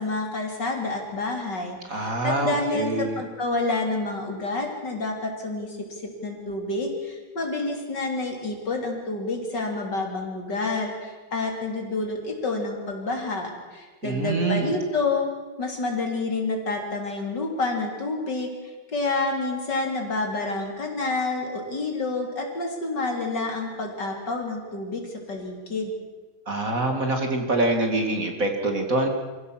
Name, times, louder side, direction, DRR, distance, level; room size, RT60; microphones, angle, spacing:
voice 1, 0.0-15.3 15.6-25.9, left 3 dB, 55° left, 2 dB, 3.9 m, -29 dB
voice 2, 1.9-3.2 14.0-14.7 26.5-29.1, right 2 dB, 40° right, 4 dB, 2.4 m, -25 dB
25.5 x 16.0 x 7.5 m, 1.3 s
omnidirectional pair, 2.3 m